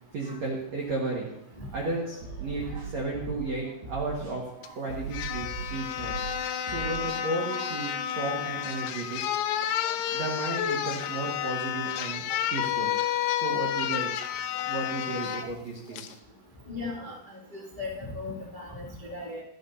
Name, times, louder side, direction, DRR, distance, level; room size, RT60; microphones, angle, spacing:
voice 1, 0.1-1.3 1.7-4.4 4.7-6.2 6.6-7.9 8.1-9.2 10.1-12.2 12.5-12.9 13.4-14.1 14.6-16.0, right 2 dB, 75° right, -2 dB, 1.6 m, -33 dB
sound 1, 2.2-3.5 3.8-4.3 4.9-6.3 6.7-7.2, right 5 dB, 55° right, 6.4 m, -38 dB
sound 2, 4.6-4.7 5.1-15.5 16.0-16.1, left 10 dB, 85° left, 2.9 m, -30 dB
voice 2, 16.7-17.2 17.5-19.4, left 2 dB, 60° left, -6 dB, 0.5 m, -37 dB
17.0 x 12.5 x 2.7 m, 0.79 s
omnidirectional pair, 5.8 m